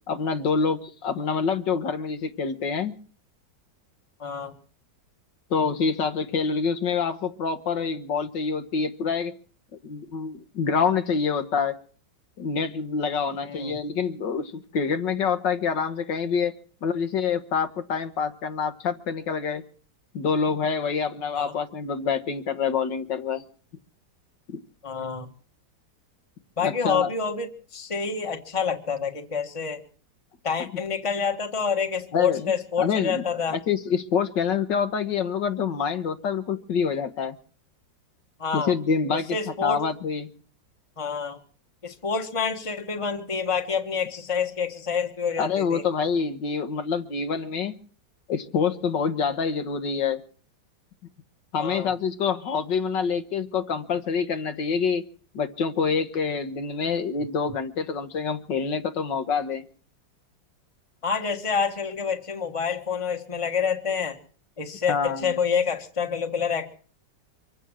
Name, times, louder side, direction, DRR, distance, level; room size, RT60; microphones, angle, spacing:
voice 1, 0.1-2.9 5.5-9.3 9.8-11.8 12.4-16.5 16.8-19.6 20.1-23.4 24.5-24.6 26.6-27.1 32.1-32.5 32.8-33.2 33.5-37.4 38.5-40.3 45.4-47.8 48.3-50.2 51.5-55.0 55.3-59.6 64.9-65.3, left 5 dB, 75° left, 8 dB, 2.0 m, -26 dB
voice 2, 4.2-4.5 13.4-13.8 21.3-21.5 24.8-25.3 26.6-29.8 30.4-33.6 38.4-38.7 39.1-39.8 41.0-41.4 41.8-45.8 51.6-51.9 61.0-64.2 64.6-66.7, left 6 dB, 20° left, 5 dB, 1.4 m, -28 dB
25.5 x 8.5 x 6.3 m, 0.43 s
omnidirectional pair, 2.0 m